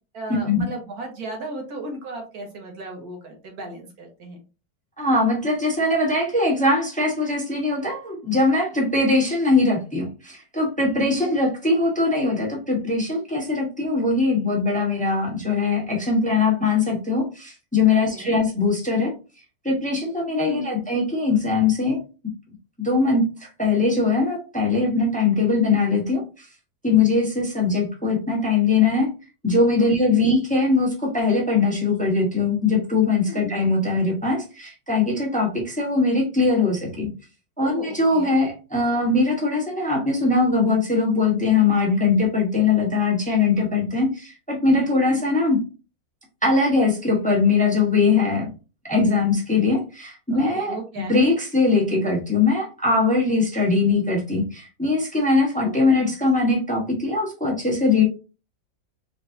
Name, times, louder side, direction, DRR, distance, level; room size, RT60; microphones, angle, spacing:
voice 1, 0.1-4.4 11.1-11.3 17.9-18.4 20.5-20.7 29.8-30.2 33.3-33.5 37.6-38.4 45.1-45.2 50.3-51.3 55.6-56.1, right 1 dB, 55° right, 1 dB, 1.7 m, -35 dB
voice 2, 5.0-19.2 19.6-22.0 22.8-26.5 26.8-29.1 29.4-37.1 37.6-45.6 46.4-48.5 48.9-58.0, left 3 dB, 5° left, -2 dB, 0.7 m, -21 dB
3.8 x 3.5 x 2.7 m, 0.33 s
omnidirectional pair, 2.1 m